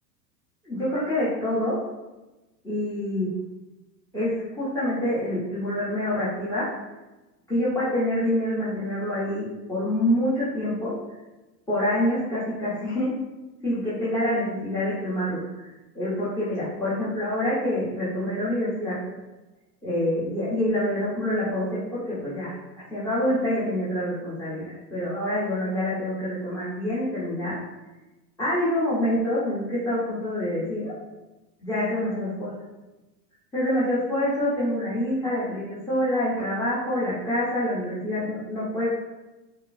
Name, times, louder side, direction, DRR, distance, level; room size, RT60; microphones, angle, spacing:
voice 1, 0.6-1.8 2.6-3.3 4.1-6.7 7.5-10.9 11.7-13.1 13.6-15.4 15.9-19.0 19.8-27.6 28.4-30.9 31.6-32.5 33.5-38.9, left 1 dB, 5° left, -11 dB, 1.0 m, -26 dB
4.2 x 2.1 x 2.5 m, 1.1 s
hypercardioid pair, 95°, 49 cm